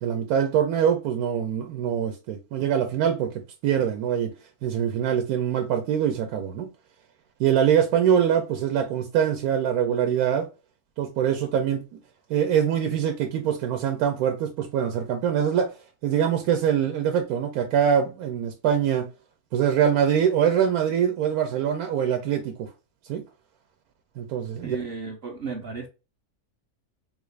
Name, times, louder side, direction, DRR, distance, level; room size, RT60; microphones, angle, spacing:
voice 1, 0.0-3.3 3.6-4.3 4.6-6.7 7.4-10.5 11.0-11.9 12.3-15.7 16.0-19.1 19.5-22.7 23.1-23.2 24.2-24.8, right 8 dB, 75° right, 1.0 m, -23 dB
voice 2, 24.6-25.9, right 5 dB, 60° right, 0.6 m, -34 dB
3.6 x 2.4 x 3.2 m
omnidirectional pair, 1.6 m